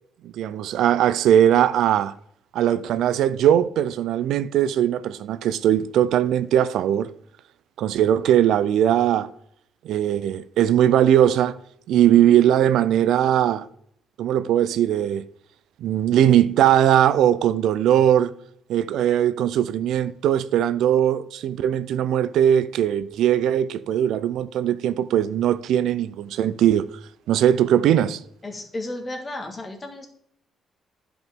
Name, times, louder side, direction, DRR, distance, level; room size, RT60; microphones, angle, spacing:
voice 1, 0.2-2.1 2.5-7.1 7.8-9.3 9.8-11.6 11.9-13.7 14.2-15.2 15.8-18.3 18.7-26.9 27.3-28.2, right 10 dB, 80° right, 0.4 m, -20 dB
voice 2, 28.4-30.1, left 2 dB, 25° left, 1.6 m, -33 dB
10.5 x 5.0 x 3.6 m
cardioid pair, 105°, 0 cm